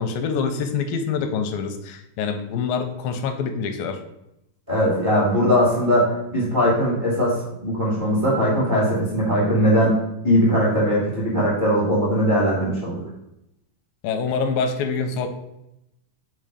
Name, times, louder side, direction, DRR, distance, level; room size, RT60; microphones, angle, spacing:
voice 1, 0.0-4.0 14.0-15.3, left 5 dB, 85° left, 7 dB, 2.3 m, -25 dB
voice 2, 4.7-9.9 10.2-13.0, equal, 25° right, -6 dB, 1.0 m, -20 dB
5.6 x 3.8 x 4.9 m, 0.85 s
omnidirectional pair, 4.1 m